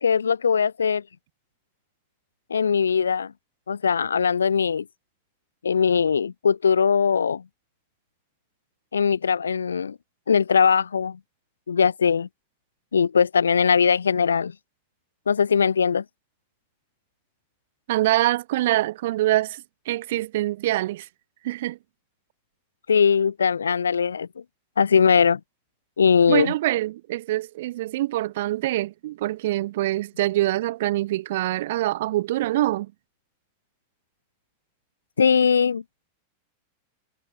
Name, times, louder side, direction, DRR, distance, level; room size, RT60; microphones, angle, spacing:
voice 1, 0.0-1.0 2.5-3.3 3.7-4.8 5.6-7.4 8.9-10.0 10.3-11.2 11.7-12.3 12.9-14.5 15.3-16.0 22.9-24.3 24.8-25.4 26.0-26.5 35.2-35.8, left 6 dB, 70° left, 0.6 m, -20 dB
voice 2, 17.9-21.1 21.4-21.8 26.3-32.9, right 16 dB, 55° right, 2.4 m, -25 dB
figure-of-eight pair, 90°, 0 cm